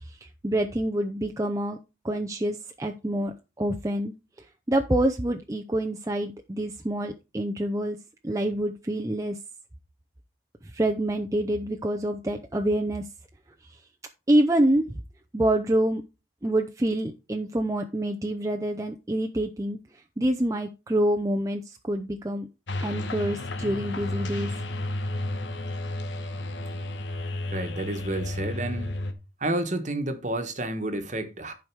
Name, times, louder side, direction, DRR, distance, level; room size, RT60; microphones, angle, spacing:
voice 1, 0.0-1.8 2.0-4.1 4.4-8.0 8.2-9.4 10.6-13.0 13.7-13.8 14.3-15.0 15.3-16.0 16.4-22.5 22.8-24.5, right 1 dB, 20° right, 0.6 m, -27 dB
sound 1, 22.7-29.1, left 1 dB, 80° left, 1.4 m, -32 dB
voice 2, 27.5-28.9 29.4-31.5, right 1 dB, 40° right, 1.3 m, -30 dB
11.5 x 5.0 x 4.6 m
head